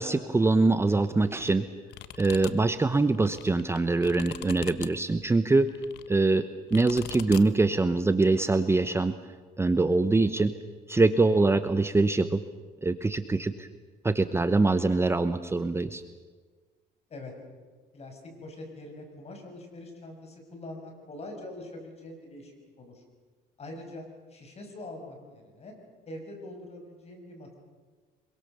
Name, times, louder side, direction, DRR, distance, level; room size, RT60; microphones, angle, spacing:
voice 1, 0.0-1.7 2.2-5.7 6.1-9.1 9.6-10.5 10.9-12.4 12.8-13.7 14.0-16.0, right 3 dB, 15° right, 11 dB, 0.9 m, -24 dB
sound 1, 1.2-1.5 1.9-2.5 3.0-4.9 5.7-6.1 6.7-7.4, left 14 dB, 80° left, 1.1 m, -41 dB
voice 2, 17.9-23.0 23.6-24.0 24.3-25.7 26.1-27.6, left 1 dB, 40° left, 3 dB, 6.4 m, -43 dB
25.5 x 23.0 x 6.8 m, 1.4 s
cardioid pair, 110°, 17 cm